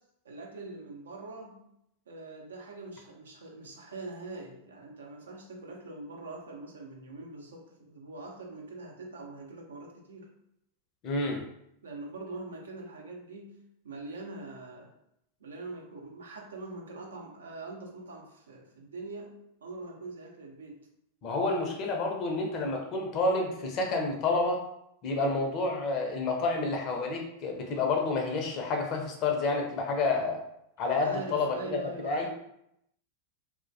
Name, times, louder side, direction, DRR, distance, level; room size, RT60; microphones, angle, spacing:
voice 1, 0.2-1.6 2.1-10.3 11.8-13.5 13.8-14.9 15.4-19.3 19.6-20.8 31.0-32.3, right 2 dB, 80° right, 0 dB, 0.5 m, -43 dB
voice 2, 11.0-11.4 21.2-24.6 25.0-30.4 30.8-31.8 32.0-32.3, left 3 dB, 45° left, 2 dB, 0.5 m, -29 dB
2.2 x 2.1 x 2.6 m, 0.78 s
hypercardioid pair, 95°, 0 cm